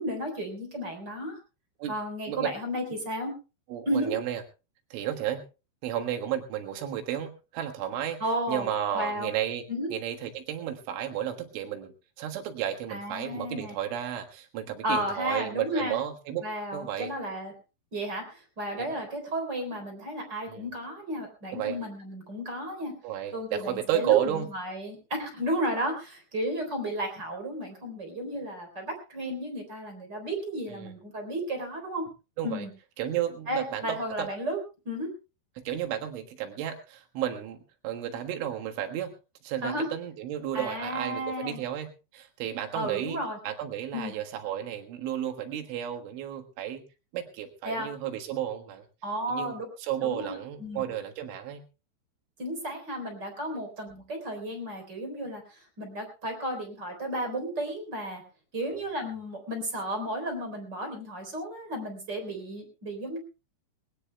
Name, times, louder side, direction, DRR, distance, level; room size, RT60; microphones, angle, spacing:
voice 1, 0.0-1.4 1.9-3.3 3.9-4.1 8.2-8.7 8.9-9.3 9.7-9.9 12.9-13.8 14.8-16.0 16.4-17.5 17.9-22.9 23.3-32.0 32.4-32.7 33.5-35.1 39.6-39.9 40.5-41.6 42.7-43.4 43.9-44.1 47.6-47.9 49.0-49.7 50.0-50.8 52.4-58.2 58.5-63.2, equal, 25° right, 4 dB, 3.8 m, -33 dB
voice 2, 3.7-4.4 4.9-5.4 5.8-8.2 8.5-16.5 16.7-17.1 18.7-19.0 20.5-20.7 21.5-21.8 23.0-24.5 30.7-30.9 32.4-32.7 33.0-34.3 35.6-39.1 39.4-46.8 47.1-48.9 49.3-51.7, right 11 dB, 90° right, 5 dB, 4.0 m, -32 dB
20.5 x 19.0 x 2.2 m, 0.31 s
omnidirectional pair, 5.4 m